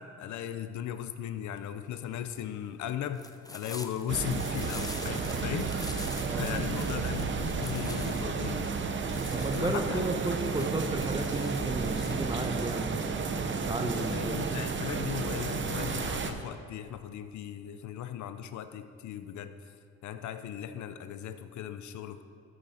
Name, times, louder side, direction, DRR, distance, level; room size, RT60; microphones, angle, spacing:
voice 1, 0.0-8.7 9.5-10.1 13.8-19.7 20.0-22.2, left 10 dB, 70° left, 10 dB, 0.6 m, -37 dB
sound 1, 1.5-12.8, left 2 dB, 10° left, 0.7 m, -46 dB
sound 2, 4.1-16.3, right 5 dB, 40° right, 0.8 m, -32 dB
voice 2, 6.2-6.6 9.3-13.1 13.5-14.5, right 2 dB, 15° right, 5 dB, 1.0 m, -33 dB
13.5 x 6.2 x 4.3 m, 2.4 s
cardioid pair, 90°, 30 cm